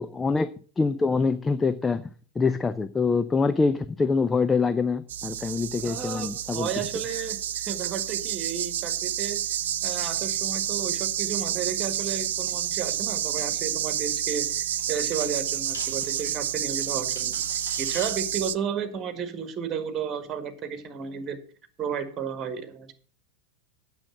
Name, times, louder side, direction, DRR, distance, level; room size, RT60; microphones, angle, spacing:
voice 1, 0.0-2.0 2.4-6.7, left 4 dB, 15° left, 13 dB, 0.5 m, -25 dB
sound 1, 5.1-18.5, right 11 dB, 60° right, 0.5 m, -29 dB
voice 2, 5.8-9.4 9.8-17.4 17.8-21.4 21.8-22.9, right 7 dB, 25° right, 10 dB, 1.7 m, -33 dB
sound 2, 9.6-18.1, left 5 dB, 65° left, 2.2 m, -47 dB
8.9 x 6.5 x 7.5 m, 0.43 s
figure-of-eight pair, 90°, 0 cm